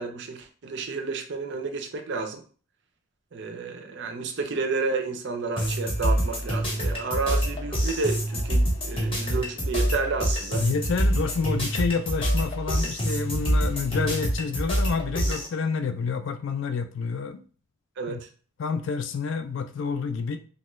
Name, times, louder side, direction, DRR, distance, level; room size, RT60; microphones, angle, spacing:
voice 1, 0.0-2.4 3.3-10.7 18.0-18.3, right 4 dB, 50° right, 5 dB, 0.5 m, -31 dB
sound 1, 5.6-15.5, equal, 25° left, 0.7 m, -26 dB
voice 2, 10.5-17.4 18.1-18.2 18.6-20.4, left 5 dB, 55° left, 8 dB, 0.3 m, -28 dB
2.9 x 2.3 x 3.0 m, 0.40 s
head